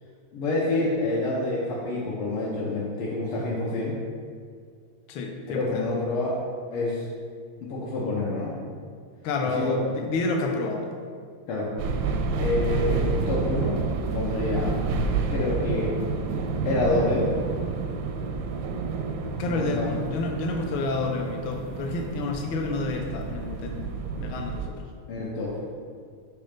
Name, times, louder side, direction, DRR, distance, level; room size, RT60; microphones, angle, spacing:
voice 1, 0.3-3.9 5.4-6.4 6.7-7.1 7.6-8.5 9.5-9.8 11.5-11.7 12.4-13.0 13.3-13.8 14.1-14.7 15.3-15.9 16.7-17.3 19.4-19.9 25.1-25.6, left 2 dB, 85° left, -6 dB, 1.8 m, -27 dB
voice 2, 5.1-5.9 9.2-10.9 19.4-24.8, left 3 dB, 70° left, 3 dB, 1.4 m, -29 dB
sound 1, 11.8-24.7, right 4 dB, 75° right, 1.1 m, -29 dB
6.6 x 3.3 x 5.1 m, 2.1 s
omnidirectional pair, 2.4 m